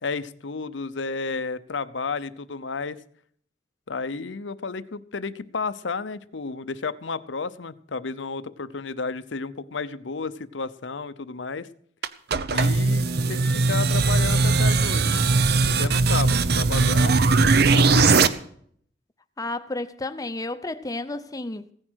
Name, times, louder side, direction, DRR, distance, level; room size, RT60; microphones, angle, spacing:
voice 1, 0.0-3.0 3.9-11.7 12.5-15.3 15.8-18.2, left 4 dB, 80° left, 0.7 m, -32 dB
sound 1, 12.0-18.3, right 3 dB, 55° right, 0.7 m, -19 dB
voice 2, 19.4-21.7, left 2 dB, 20° left, 0.7 m, -32 dB
16.5 x 9.8 x 6.3 m
head